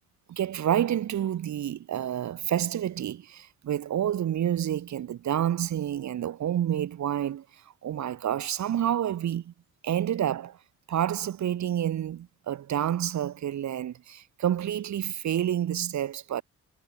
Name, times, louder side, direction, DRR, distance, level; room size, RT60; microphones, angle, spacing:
voice 1, 0.3-7.4 7.8-9.5 9.8-10.6 10.9-16.4, right 10 dB, 65° right, 4.7 m, -29 dB
cardioid pair, 90°, 30 cm